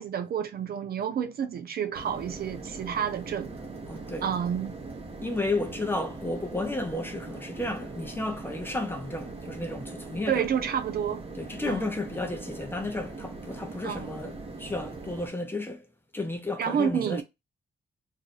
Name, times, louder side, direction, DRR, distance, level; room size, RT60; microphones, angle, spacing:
voice 1, 0.0-3.5 4.2-4.8 10.3-11.3 11.7-11.9 13.8-14.1 16.6-17.2, right 8 dB, 55° right, 0.5 m, -29 dB
sound 1, 1.9-15.3, right 3 dB, 35° right, 0.8 m, -41 dB
voice 2, 3.9-4.3 5.2-10.5 11.4-14.3 14.6-15.9 16.1-17.2, left 2 dB, 10° left, 0.6 m, -32 dB
2.5 x 2.3 x 4.0 m
cardioid pair, 125°, 18 cm